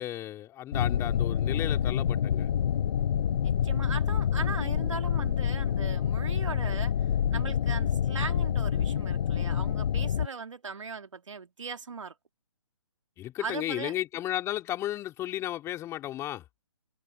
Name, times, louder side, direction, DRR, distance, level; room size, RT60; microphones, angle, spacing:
voice 1, 0.0-2.5 13.2-16.4, left 13 dB, 15° left, 3.3 m, -34 dB
sound 1, 0.7-10.3, left 9 dB, 55° left, 0.5 m, -27 dB
voice 2, 3.4-6.9 7.3-12.1 13.4-13.9, right 5 dB, 75° right, 2.8 m, -39 dB
hypercardioid pair, 145°, 16 cm